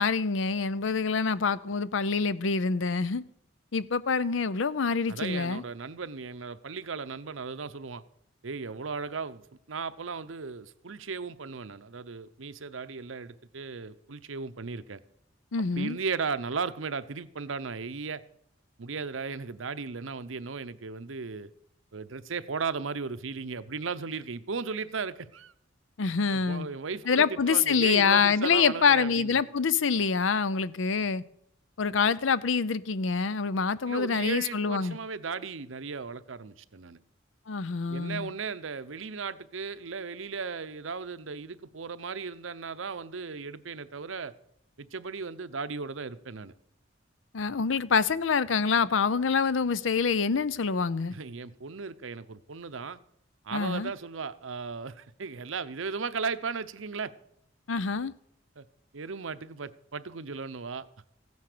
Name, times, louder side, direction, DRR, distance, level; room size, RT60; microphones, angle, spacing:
voice 1, 0.0-3.2 3.7-5.6 15.5-16.0 26.0-26.7 27.1-31.2 31.8-35.0 37.5-38.3 47.3-51.1 53.5-53.9 57.7-58.1, left 5 dB, 75° left, 0.6 m, -26 dB
voice 2, 5.1-8.0 8.4-9.4 9.7-15.0 15.8-18.2 18.8-21.5 21.9-25.5 26.3-29.4 33.6-37.0 37.9-44.3 44.8-46.5 51.1-53.0 53.4-57.1 58.6-58.7 58.9-60.9, right 5 dB, 85° right, 0.8 m, -36 dB
15.5 x 9.6 x 6.7 m
head